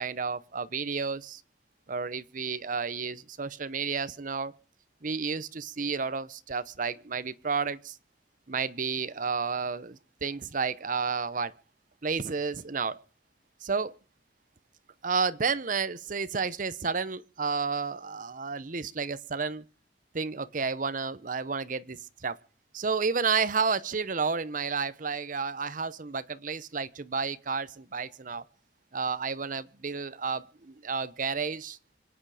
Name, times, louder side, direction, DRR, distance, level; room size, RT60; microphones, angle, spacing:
voice 1, 0.0-1.4 1.9-4.5 5.0-8.0 8.5-11.5 12.0-13.0 13.6-13.9 15.0-19.6 20.1-22.4 22.7-28.4 28.9-31.8, right 5 dB, 45° right, 0.8 m, -31 dB
26.0 x 9.1 x 4.9 m
head